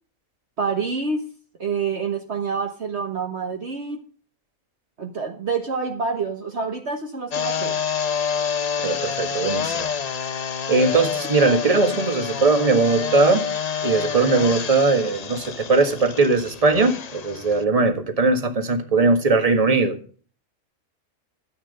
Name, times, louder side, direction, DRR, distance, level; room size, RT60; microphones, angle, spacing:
voice 1, 0.6-1.2 1.6-4.0 5.0-7.8, right 5 dB, 50° right, 4 dB, 1.4 m, -27 dB
sound 1, 7.3-17.6, left 7 dB, 45° left, 0.5 m, -28 dB
voice 2, 8.8-9.9 10.7-13.5 13.8-19.9, right 3 dB, 25° right, 5 dB, 1.7 m, -20 dB
13.5 x 8.6 x 5.4 m, 0.42 s
omnidirectional pair, 1.5 m